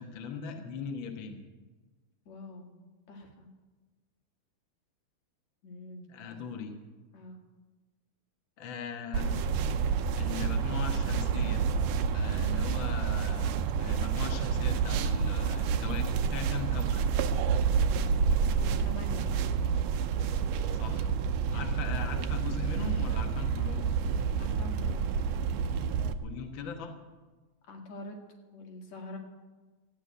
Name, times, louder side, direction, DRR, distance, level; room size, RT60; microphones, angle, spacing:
voice 1, 0.0-1.4 6.1-6.7 8.6-9.4 10.1-11.7 12.1-17.0 20.7-21.1 21.5-23.8 26.2-26.9, left 6 dB, 50° left, 3 dB, 1.7 m, -40 dB
voice 2, 2.3-2.7 3.1-3.5 5.6-6.4 7.1-7.4 18.5-19.3 24.4-25.1 27.7-28.2 28.5-29.2, left 1 dB, 70° left, 2 dB, 3.2 m, -45 dB
sound 1, 9.1-26.1, right 6 dB, 75° right, 1.7 m, -29 dB
14.0 x 8.9 x 9.4 m, 1.3 s
omnidirectional pair, 3.3 m